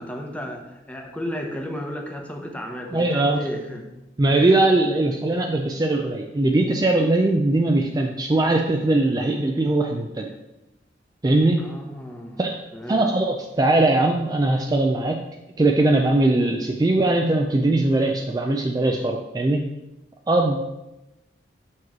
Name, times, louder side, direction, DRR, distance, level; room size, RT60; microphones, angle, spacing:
voice 1, 0.0-3.9 11.6-12.4 12.7-13.1, equal, 10° left, 2 dB, 0.9 m, -33 dB
voice 2, 2.9-3.4 4.2-10.3 11.2-11.6 12.4-12.6 12.9-15.2 15.6-19.7 20.3-20.6, right 2 dB, 20° right, 3 dB, 0.4 m, -20 dB
7.2 x 3.1 x 6.0 m, 0.96 s
head